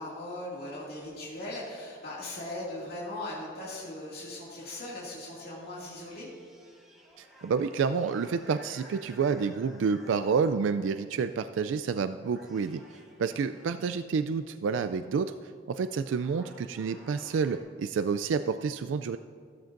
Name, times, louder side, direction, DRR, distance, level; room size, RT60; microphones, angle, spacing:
voice 1, 0.0-6.3 13.3-13.5, left 1 dB, 55° left, -6 dB, 2.3 m, -39 dB
Cat fight slomo, 5.2-10.8 11.6-11.9 12.2-14.0 15.4-15.5 15.9-17.6, right 1 dB, ahead, 1.6 m, -55 dB
voice 2, 7.2-12.8 13.2-15.3 15.7-19.2, right 5 dB, 85° right, 11 dB, 0.3 m, -29 dB
15.0 x 13.0 x 2.6 m, 2.3 s
head